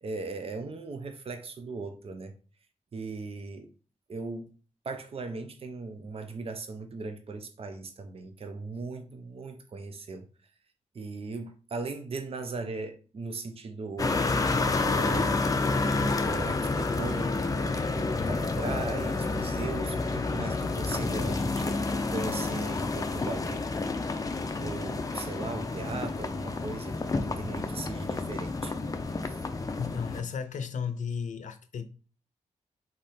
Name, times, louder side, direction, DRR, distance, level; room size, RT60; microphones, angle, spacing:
voice 1, 0.0-2.3 2.9-3.7 4.1-4.5 4.8-10.3 10.9-14.2 14.8-15.4 15.9-21.8 22.1-23.6 24.6-28.7 29.3-29.4, right 3 dB, 50° right, 0.7 m, -38 dB
sound 1, 14.0-30.2, left 3 dB, 30° left, 0.5 m, -29 dB
voice 2, 29.8-31.8, left 6 dB, 80° left, 0.6 m, -34 dB
3.8 x 3.3 x 4.3 m
wide cardioid pair, 95°, 13 cm